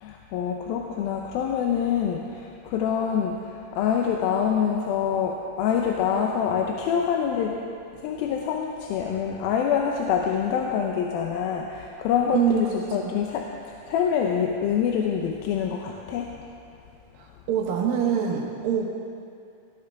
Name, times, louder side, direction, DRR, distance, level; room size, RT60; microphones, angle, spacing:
voice 1, 0.0-7.6 8.0-16.4, left 7 dB, 80° left, 1 dB, 2.4 m, -26 dB
voice 2, 12.3-13.1 17.2-18.9, right 7 dB, 70° right, 0 dB, 2.8 m, -25 dB
17.0 x 14.0 x 3.5 m, 2.4 s
omnidirectional pair, 4.5 m